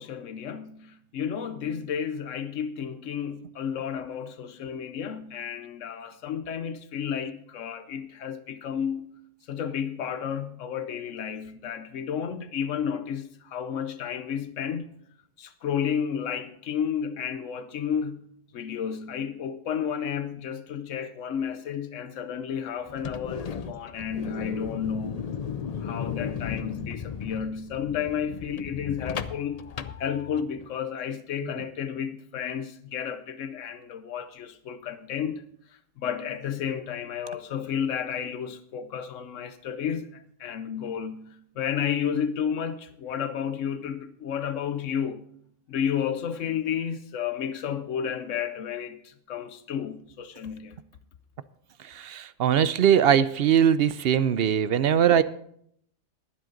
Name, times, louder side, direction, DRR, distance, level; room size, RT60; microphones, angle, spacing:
voice 1, 0.0-9.1 9.5-14.9 15.4-18.3 18.5-25.2 25.8-35.5 36.0-45.3 45.7-50.8, left 8 dB, 85° left, 1.1 m, -32 dB
sound 1, 22.9-30.7, left 7 dB, 50° left, 0.4 m, -35 dB
voice 2, 51.8-55.2, right 9 dB, 60° right, 0.7 m, -21 dB
20.0 x 7.8 x 3.8 m
omnidirectional pair, 1.3 m